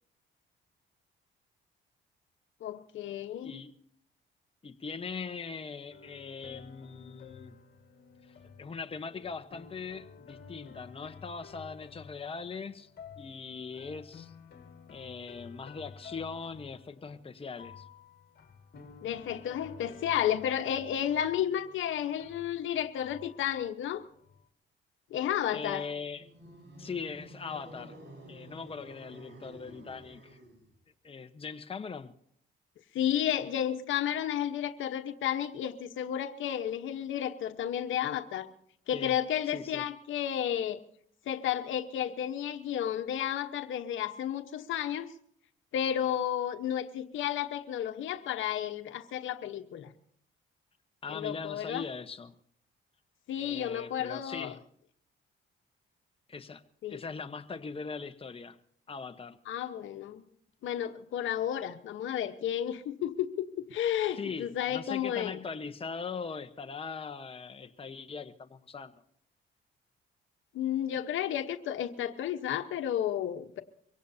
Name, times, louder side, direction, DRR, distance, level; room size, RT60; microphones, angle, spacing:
voice 1, 2.6-3.6 19.0-24.0 25.1-25.9 32.9-38.5 38.9-40.8 41.3-45.1 45.7-49.9 51.1-51.8 53.3-54.5 56.8-57.0 59.5-60.2 60.6-65.4 70.5-73.6, left 10 dB, 75° left, 8 dB, 1.2 m, -32 dB
voice 2, 4.6-7.6 8.6-12.9 13.2-14.3 14.9-17.8 25.5-26.3 26.8-28.0 28.3-30.4 31.0-32.1 38.9-39.2 39.5-39.8 51.0-52.3 53.4-54.6 56.3-56.6 56.9-58.6 58.9-59.4 64.2-68.9, left 5 dB, 30° left, 7 dB, 1.1 m, -40 dB
sound 1, 5.9-24.5, left 6 dB, 50° left, 2.1 m, -52 dB
sound 2, 26.1-30.8, equal, 60° right, 4.5 m, -50 dB
23.5 x 17.5 x 2.8 m, 0.65 s
cardioid pair, 90°, 20 cm